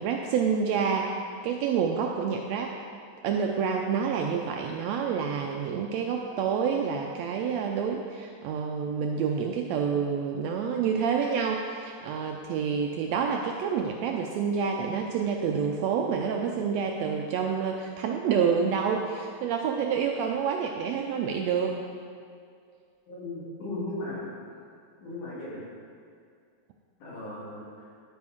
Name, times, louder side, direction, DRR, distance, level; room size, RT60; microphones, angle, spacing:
voice 1, 0.0-2.7 3.2-21.8, right 6 dB, 80° right, 2 dB, 1.5 m, -28 dB
voice 2, 23.1-24.2 25.0-25.6 27.0-27.6, left 2 dB, 80° left, -7 dB, 4.0 m, -36 dB
10.0 x 9.5 x 3.6 m, 2.3 s
omnidirectional pair, 3.5 m